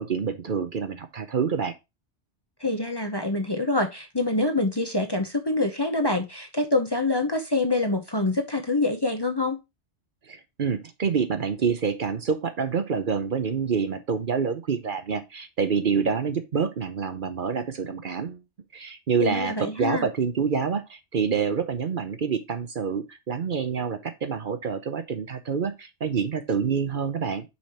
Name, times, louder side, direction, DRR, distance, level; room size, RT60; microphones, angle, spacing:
voice 1, 0.0-1.7 10.3-18.4 18.7-27.4, right 6 dB, 55° right, 0.9 m, -27 dB
voice 2, 2.6-9.6 19.2-20.1, left 2 dB, 25° left, 0.7 m, -25 dB
5.6 x 5.0 x 4.3 m
omnidirectional pair, 1.1 m